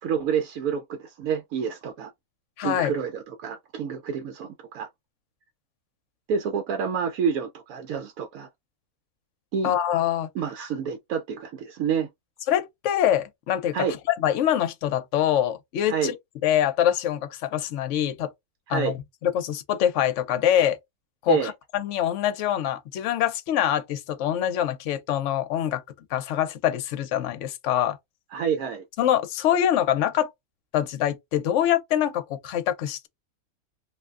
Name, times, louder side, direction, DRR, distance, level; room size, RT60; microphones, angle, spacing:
voice 1, 0.0-2.1 2.6-4.9 6.3-8.5 9.5-9.7 10.3-12.1 13.7-14.0 15.9-16.1 18.7-18.9 21.3-21.5 28.3-28.8, right 7 dB, 75° right, 1.0 m, -28 dB
voice 2, 2.6-2.9 9.6-10.3 12.5-13.8 14.2-16.2 16.4-18.3 18.7-19.0 19.2-20.8 21.2-25.8 26.1-28.0 29.0-30.3 30.7-33.1, left 11 dB, 65° left, 0.8 m, -24 dB
3.3 x 2.6 x 2.3 m
omnidirectional pair, 1.5 m